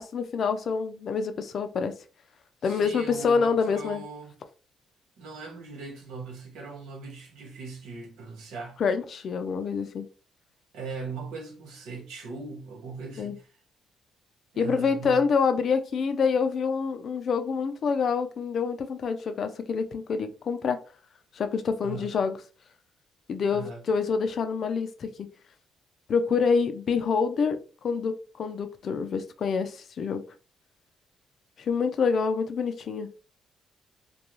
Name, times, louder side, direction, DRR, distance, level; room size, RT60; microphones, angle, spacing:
voice 1, 0.0-1.9 2.6-4.0 8.8-10.1 13.2-13.4 14.6-20.8 21.4-22.4 23.3-25.3 26.1-30.2 31.6-33.1, left 5 dB, 55° left, 0.4 m, -27 dB
voice 2, 2.6-4.3 5.2-8.8 10.7-13.5 14.5-15.2 21.8-22.1 23.5-23.8, right 4 dB, 90° right, 0.9 m, -39 dB
2.4 x 2.2 x 2.9 m
cardioid pair, 90°, 0 cm